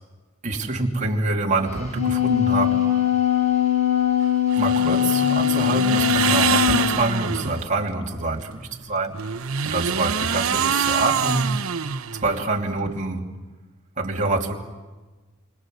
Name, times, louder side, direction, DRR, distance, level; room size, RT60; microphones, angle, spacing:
voice 1, 0.4-2.9 4.5-9.2 9.6-11.6 12.2-13.3 14.0-14.6, right 2 dB, 35° right, 2.9 m, -25 dB
Wind instrument woodwind instrument, 1.7-6.9, left 11 dB, 35° left, 6.4 m, -21 dB
sound 1, 4.5-7.6 9.1-12.4, right 7 dB, 85° right, 0.9 m, -25 dB
29.0 x 25.0 x 7.9 m
head